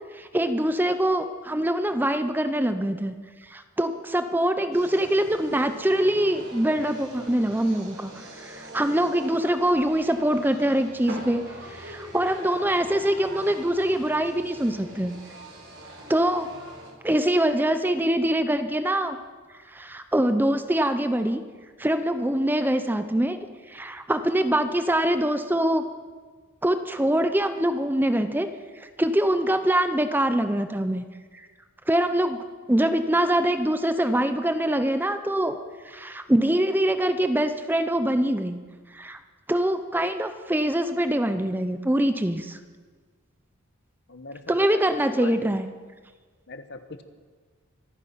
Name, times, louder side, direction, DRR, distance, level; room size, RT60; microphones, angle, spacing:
voice 1, 0.1-3.1 3.5-15.2 16.1-16.5 17.0-19.2 19.7-21.4 21.8-23.4 23.7-25.8 26.6-28.5 28.8-31.0 31.3-31.5 31.9-35.6 35.8-38.6 38.9-39.2 39.5-42.6 44.5-45.7, right 1 dB, 10° right, 9 dB, 0.6 m, -24 dB
sound 1, 4.7-16.9, right 1 dB, 60° right, 4.3 m, -43 dB
voice 2, 44.1-44.8 45.1-45.6 46.5-47.0, left 3 dB, 55° left, 9 dB, 1.1 m, -39 dB
24.5 x 9.7 x 5.7 m, 1.5 s
head